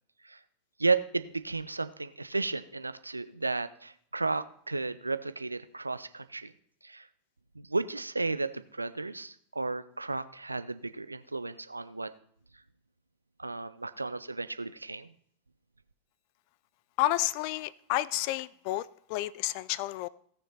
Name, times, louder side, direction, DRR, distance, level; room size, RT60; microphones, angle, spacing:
voice 1, 0.8-6.5 6.8-7.0 7.6-12.1 13.4-15.1, right 3 dB, 80° right, 14 dB, 0.5 m, -33 dB
voice 2, 17.0-20.1, left 17 dB, 45° left, 20 dB, 0.4 m, -30 dB
17.0 x 6.6 x 4.2 m, 0.64 s
figure-of-eight pair, 90°, 0 cm